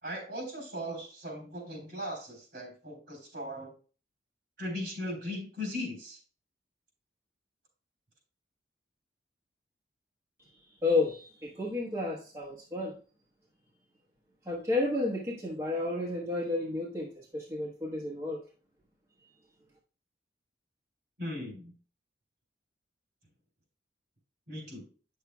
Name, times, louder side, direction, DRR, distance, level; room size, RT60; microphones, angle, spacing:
voice 1, 0.0-3.7 4.6-6.2 21.2-21.7 24.5-24.8, equal, 55° right, -1 dB, 3.5 m, -38 dB
voice 2, 10.8-12.9 14.4-18.4, left 2 dB, 15° right, -5 dB, 1.2 m, -31 dB
8.9 x 6.6 x 2.3 m, 0.37 s
head